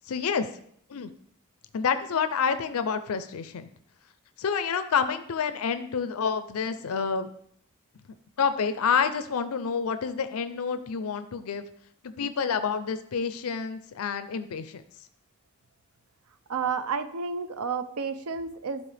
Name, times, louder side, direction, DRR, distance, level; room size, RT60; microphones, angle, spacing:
voice 1, 0.1-0.5 0.9-1.1 1.7-3.7 4.4-7.3 8.4-11.6 12.0-14.8, left 6 dB, 80° left, 11 dB, 0.5 m, -28 dB
voice 2, 16.5-18.8, right 5 dB, 85° right, 11 dB, 0.6 m, -31 dB
11.5 x 4.2 x 3.4 m, 0.68 s
head